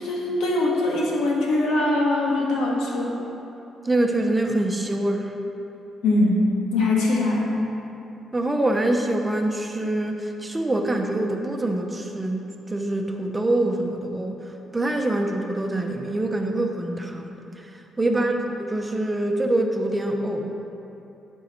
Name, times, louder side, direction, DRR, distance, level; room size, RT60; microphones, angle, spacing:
voice 1, 0.0-3.2 6.0-7.5 18.0-18.4, left 2 dB, 85° left, -2 dB, 1.6 m, -22 dB
voice 2, 3.8-5.3 8.3-14.4 14.7-17.6 18.0-20.5, right 1 dB, 15° right, 3 dB, 0.8 m, -25 dB
11.0 x 5.5 x 4.3 m, 2.9 s
cardioid pair, 90°, 0 cm